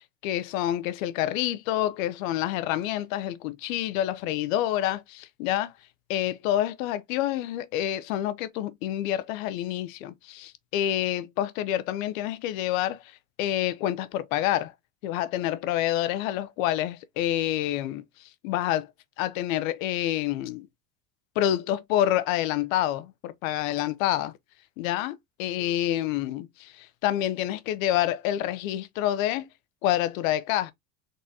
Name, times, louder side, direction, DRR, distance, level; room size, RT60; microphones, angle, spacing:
voice 1, 0.0-5.7 6.1-13.1 13.4-14.7 15.0-18.0 18.4-18.9 19.2-20.7 21.4-24.3 24.8-29.5 29.8-30.7, left 12 dB, 80° left, 0.6 m, -28 dB
3.9 x 3.8 x 2.7 m
supercardioid pair, 100°, 40 cm